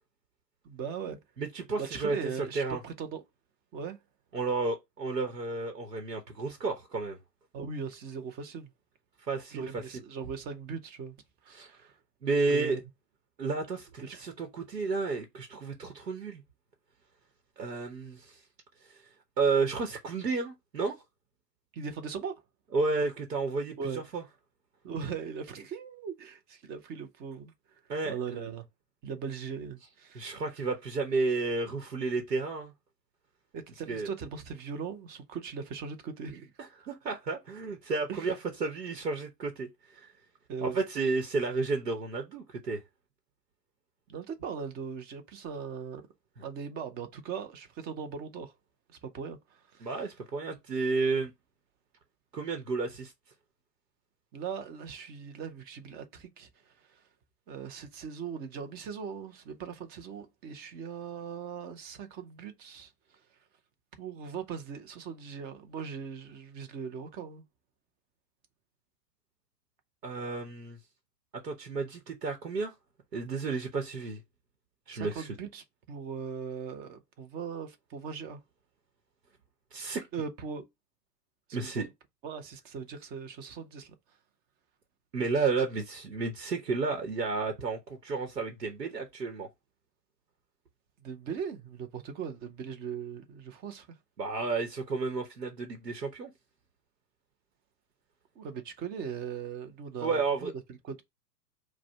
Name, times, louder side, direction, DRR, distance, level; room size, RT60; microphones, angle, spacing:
voice 1, 0.6-1.2 1.8-3.2 3.7-4.0 7.5-8.7 9.5-11.2 11.4-12.0 12.5-12.8 14.0-14.2 21.7-22.4 23.8-24.0 24.8-28.7 29.0-30.4 33.5-36.5 38.1-38.4 40.5-40.8 44.1-46.1 46.4-48.5 48.9-49.9 54.3-57.1 57.5-63.2 64.0-67.4 74.9-78.4 80.1-80.6 81.6-81.9 82.2-84.2 91.0-94.0 98.3-101.0, right 6 dB, 20° right, 0.6 m, -39 dB
voice 2, 1.4-2.2 2.5-2.8 4.3-7.2 9.3-9.6 11.5-11.7 12.2-12.8 13.4-16.4 17.6-18.4 18.9-19.0 19.4-21.0 22.7-23.8 24.1-24.2 27.9-28.5 30.1-32.7 33.9-34.1 36.8-38.3 38.6-40.1 40.6-42.8 49.8-51.3 52.3-53.1 70.0-70.8 71.4-72.7 73.1-74.2 74.9-75.3 79.7-80.1 81.5-81.9 85.1-89.5 94.2-96.3 100.0-100.5, right 4 dB, 75° right, 1.0 m, -32 dB
4.8 x 2.2 x 4.5 m
figure-of-eight pair, 105°, 48 cm